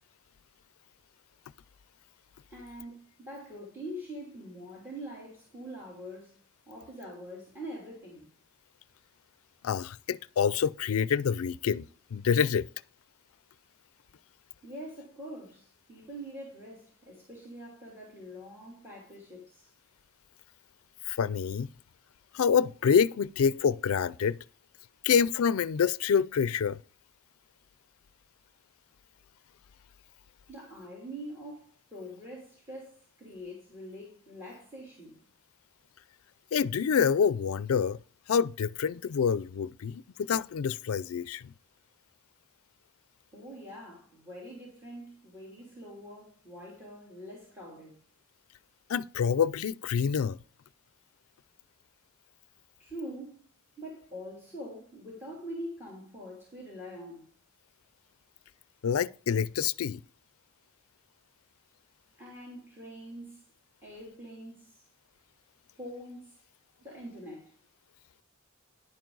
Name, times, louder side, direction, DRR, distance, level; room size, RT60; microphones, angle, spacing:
voice 1, 2.5-6.3 6.7-8.3 14.6-19.7 30.5-35.2 43.3-48.0 52.8-53.5 53.8-57.3 62.2-63.4 63.8-64.8 65.8-66.4 66.8-67.6, equal, 10° right, 3.1 m, -44 dB
voice 2, 9.6-11.9 12.1-12.7 21.1-21.7 22.3-24.4 25.0-26.8 36.5-38.0 38.3-41.5 48.9-50.4 58.8-60.0, left 7 dB, 85° left, 0.4 m, -27 dB
11.0 x 9.3 x 3.9 m
head